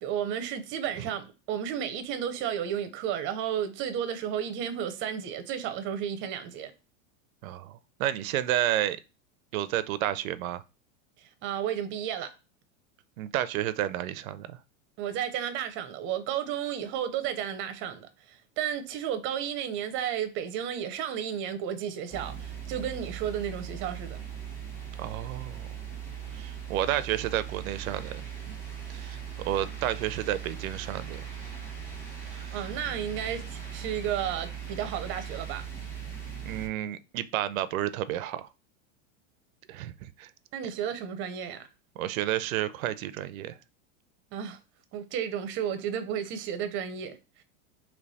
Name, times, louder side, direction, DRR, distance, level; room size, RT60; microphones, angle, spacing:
voice 1, 0.0-6.7 11.2-12.3 15.0-24.2 32.5-35.6 40.5-41.7 44.3-44.6 44.9-47.4, right 9 dB, 30° right, 0.6 m, -33 dB
voice 2, 7.4-9.0 9.5-10.6 13.2-14.6 25.0-25.7 26.3-28.6 28.9-31.2 32.3-32.7 36.4-38.5 39.7-40.3 42.0-43.6, right 12 dB, 85° right, 0.5 m, -31 dB
sound 1, 22.1-36.7, right 8 dB, 5° left, 1.2 m, -39 dB
3.2 x 3.1 x 4.0 m
supercardioid pair, 145°, 40 cm